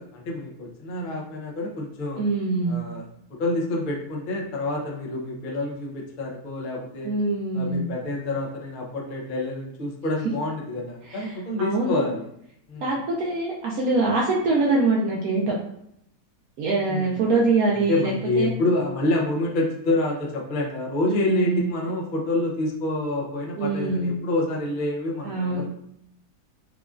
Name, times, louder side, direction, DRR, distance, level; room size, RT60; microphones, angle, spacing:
voice 1, 0.0-2.2 2.6-3.1 3.4-7.1 7.5-12.2 12.7-12.9 16.9-17.2 17.9-25.7, left 2 dB, 80° left, -2 dB, 0.4 m, -27 dB
voice 2, 2.2-2.8 7.0-7.9 11.1-11.3 11.6-12.0 12.8-15.5 16.6-18.5 21.1-21.6 23.6-24.2 25.2-25.6, right 3 dB, 70° right, -3 dB, 0.9 m, -24 dB
4.9 x 2.3 x 2.4 m, 0.75 s
omnidirectional pair, 1.8 m